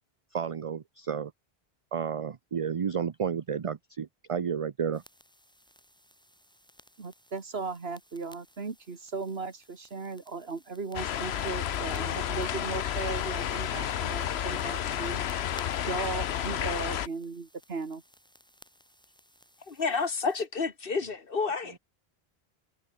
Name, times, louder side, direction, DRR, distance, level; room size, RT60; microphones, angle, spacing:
voice 1, 0.3-1.3 1.9-5.0, right 7 dB, 40° right, 0.6 m, -31 dB
sound 1, 4.9-20.5, equal, 5° left, 8.0 m, -58 dB
voice 2, 7.0-15.2 15.8-18.0, right 4 dB, 75° right, 2.2 m, -37 dB
sound 2, 10.9-17.1, left 10 dB, 85° left, 1.0 m, -31 dB
voice 3, 19.6-21.8, left 4 dB, 60° left, 1.7 m, -30 dB
omnidirectional pair, 1.1 m